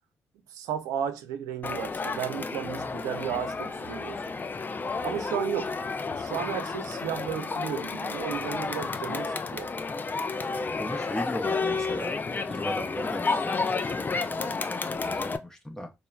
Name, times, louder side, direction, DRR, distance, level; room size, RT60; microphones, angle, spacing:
voice 1, 0.5-4.2 5.0-5.7 6.1-9.7, right 9 dB, 80° right, 0.4 m, -34 dB
Crowd, 1.6-15.4, left 4 dB, 30° left, 0.4 m, -31 dB
voice 2, 10.8-12.2 12.5-15.9, left 1 dB, 10° left, 0.7 m, -37 dB
3.0 x 2.0 x 2.3 m
hypercardioid pair, 45°, 6 cm